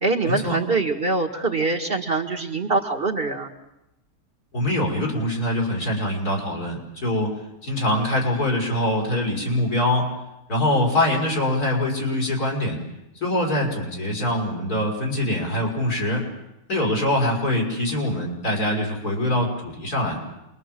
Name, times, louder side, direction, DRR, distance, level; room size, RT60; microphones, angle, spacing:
voice 1, 0.0-3.5, right 3 dB, 35° right, 3 dB, 2.0 m, -24 dB
voice 2, 4.5-10.1 10.5-12.8 13.2-16.2 16.7-20.2, left 1 dB, 75° left, -1 dB, 6.2 m, -24 dB
28.0 x 22.5 x 7.7 m, 0.90 s
omnidirectional pair, 1.6 m